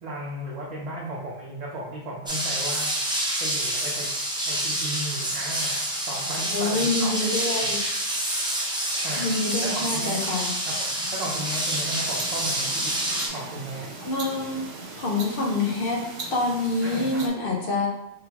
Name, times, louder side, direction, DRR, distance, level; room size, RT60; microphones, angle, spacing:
voice 1, 0.0-7.7 9.0-9.3 9.6-10.2 10.6-12.9 13.3-13.9 16.8-17.3, right 1 dB, 45° right, -5 dB, 0.7 m, -35 dB
sound 1, 2.3-13.3, right 1 dB, 5° right, 0.6 m, -27 dB
voice 2, 6.5-7.8 9.2-10.5 14.0-14.6 14.9-16.0 16.3-17.9, left 3 dB, 60° left, -1 dB, 0.9 m, -26 dB
sound 2, 11.3-17.3, right 3 dB, 85° right, 1.0 m, -39 dB
4.0 x 3.3 x 2.8 m, 0.90 s
omnidirectional pair, 1.1 m